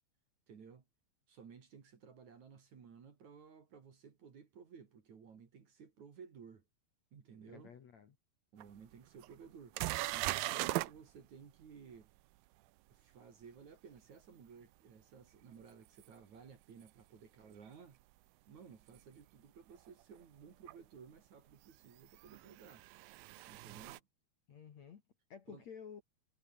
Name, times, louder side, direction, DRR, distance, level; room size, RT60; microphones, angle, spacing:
voice 1, 0.5-0.8 1.3-6.6 7.1-7.8 8.5-9.8 10.1-12.1 12.9-18.0 18.5-22.9 23.5-24.0 25.5-25.6, right 6 dB, 45° right, 3.6 m, -56 dB
voice 2, 7.5-8.2 24.5-25.0 25.3-26.0, left 7 dB, 50° left, 2.5 m, -52 dB
sound 1, 8.6-8.7 9.2-9.3 9.8-10.9 16.0-16.1 18.9-19.0 20.7-20.8 22.2-24.0, right 18 dB, 90° right, 2.0 m, -38 dB
omnidirectional pair, 5.1 m